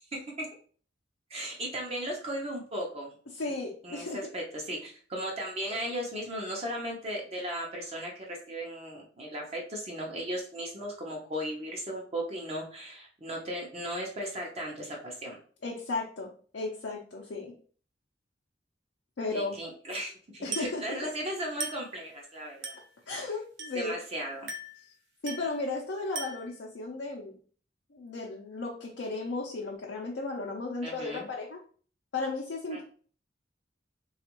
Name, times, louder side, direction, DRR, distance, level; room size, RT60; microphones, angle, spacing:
voice 1, 1.3-3.1 3.8-15.4 19.3-22.8 23.7-24.5 30.8-31.3 32.7-32.8, equal, 35° right, -2 dB, 0.7 m, -36 dB
voice 2, 3.3-4.2 5.7-5.8 15.6-17.5 19.2-19.6 20.4-20.8 23.1-24.0 25.2-27.4 27.9-31.6 32.1-32.8, left 3 dB, 75° left, -3 dB, 0.6 m, -35 dB
Glass, 20.5-20.9 21.6-22.0 22.6-22.9 23.6-23.9 24.5-24.8 25.3-25.6 26.2-26.6, right 3 dB, 80° right, 0.8 m, -38 dB
3.3 x 2.4 x 3.0 m, 0.44 s
head